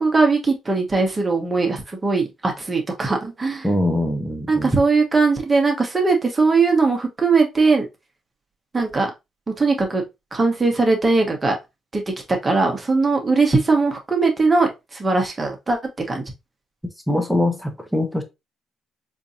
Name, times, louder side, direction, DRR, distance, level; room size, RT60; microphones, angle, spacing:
voice 1, 0.0-3.6 4.5-7.9 8.7-9.1 9.6-10.0 10.3-11.5 11.9-12.0 12.3-15.8 16.1-16.2, right 3 dB, 25° right, 1.1 m, -20 dB
voice 2, 3.6-4.7 17.1-18.2, left 1 dB, ahead, 0.8 m, -22 dB
4.4 x 2.7 x 2.6 m
cardioid pair, 90°, 0 cm